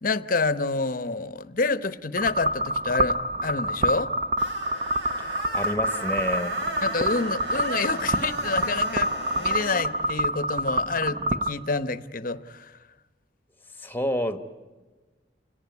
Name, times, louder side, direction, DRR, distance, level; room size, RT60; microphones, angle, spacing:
voice 1, 0.0-4.1 6.8-12.8, left 3 dB, 50° left, 13 dB, 0.9 m, -28 dB
sound 1, 2.2-11.5, right 1 dB, 40° right, 0.8 m, -27 dB
Screech, 4.4-9.9, right 2 dB, 80° right, 4.1 m, -35 dB
voice 2, 5.2-6.6 13.8-14.4, left 1 dB, 10° left, 9 dB, 1.2 m, -29 dB
29.5 x 18.0 x 9.5 m, 1.3 s
head